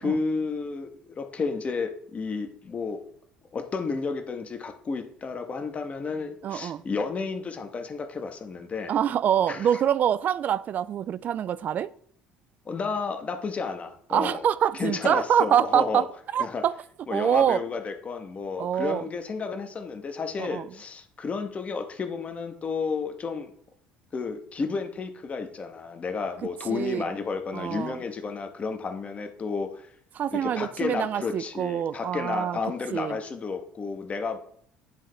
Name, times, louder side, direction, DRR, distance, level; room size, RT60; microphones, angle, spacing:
voice 1, 0.0-3.0 3.5-8.9 9.5-9.8 12.7-14.5 14.7-16.1 16.4-16.6 17.1-23.5 24.1-29.9 30.3-34.4, left 4 dB, 30° left, 0.9 m, -32 dB
voice 2, 6.4-6.8 8.9-11.9 14.1-16.1 16.3-16.7 17.1-17.6 18.6-19.0 20.4-20.7 26.7-27.1 27.5-28.0 30.2-32.6 32.9-33.2, right 9 dB, 40° right, 0.3 m, -25 dB
10.0 x 3.7 x 3.3 m
figure-of-eight pair, 55°, 4 cm